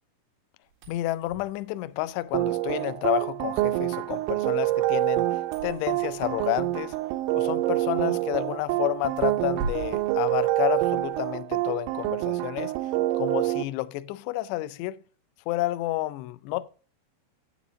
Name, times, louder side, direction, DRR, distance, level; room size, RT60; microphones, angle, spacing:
sound 1, 0.7-11.2, right 4 dB, 70° right, 4.0 m, -43 dB
voice 1, 0.9-7.0 7.3-12.7 13.2-15.0 15.5-16.7, left 17 dB, 80° left, 2.6 m, -30 dB
sound 2, 2.3-13.6, right 16 dB, 85° right, 3.1 m, -27 dB
9.3 x 8.5 x 3.7 m
omnidirectional pair, 5.4 m